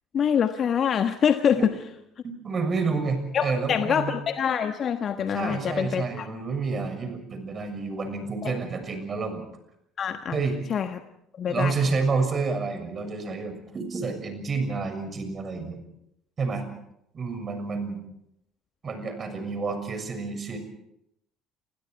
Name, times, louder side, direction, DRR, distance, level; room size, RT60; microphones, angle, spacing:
voice 1, 0.1-1.6 3.3-6.3 8.4-8.6 10.0-10.4 10.7-11.0 11.4-11.8, left 8 dB, 45° left, 8 dB, 1.3 m, -25 dB
voice 2, 2.2-4.1 5.3-9.4 10.3-10.6 11.5-15.8 16.4-16.7 17.1-18.0 18.8-20.6, right 4 dB, 35° right, 7 dB, 6.8 m, -29 dB
29.5 x 25.0 x 4.8 m, 0.79 s
figure-of-eight pair, 55°, 0 cm